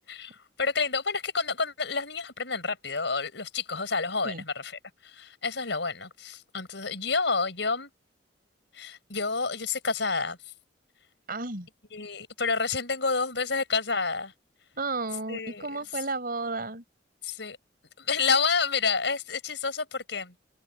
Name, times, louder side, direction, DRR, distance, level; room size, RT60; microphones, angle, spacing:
voice 1, 0.6-4.7 5.0-7.9 8.7-10.4 11.9-14.3 15.3-15.7 17.2-17.6 18.0-20.3, left 4 dB, 70° left, 5.8 m, -29 dB
voice 2, 11.3-11.7 14.8-16.8, right 3 dB, 55° right, 5.2 m, -33 dB
head